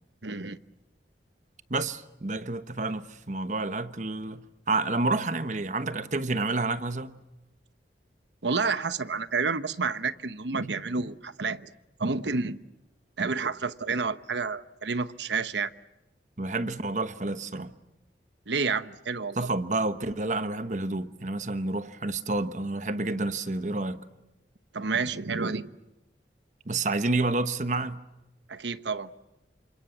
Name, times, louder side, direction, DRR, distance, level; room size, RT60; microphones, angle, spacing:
voice 1, 0.2-0.6 8.4-11.7 12.0-12.6 13.2-15.7 18.5-19.5 24.7-25.7 28.5-29.1, right 4 dB, 90° right, 1.1 m, -29 dB
voice 2, 1.7-7.2 16.4-17.7 19.4-24.0 26.7-28.0, right 2 dB, 45° right, 1.2 m, -29 dB
29.5 x 26.5 x 7.3 m
head